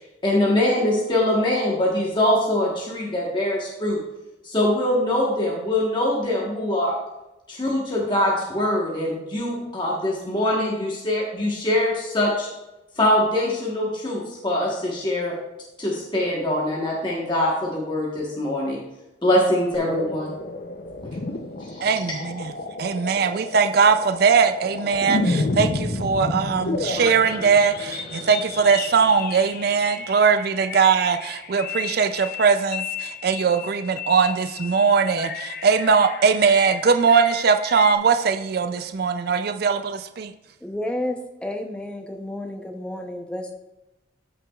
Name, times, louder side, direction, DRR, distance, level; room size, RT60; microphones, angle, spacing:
voice 1, 0.2-4.0 4.4-6.9 7.5-12.5 13.0-15.3 15.8-18.8 19.2-20.3 21.7-21.9, left 1 dB, 25° left, -4 dB, 1.2 m, -23 dB
sound 1, 19.7-37.9, left 3 dB, 50° left, 0.6 m, -31 dB
voice 2, 21.8-22.5 22.8-40.3, right 5 dB, 55° right, 8 dB, 0.4 m, -20 dB
voice 3, 40.6-43.5, left 1 dB, 5° left, 3 dB, 0.7 m, -31 dB
14.0 x 5.9 x 2.4 m, 0.97 s
head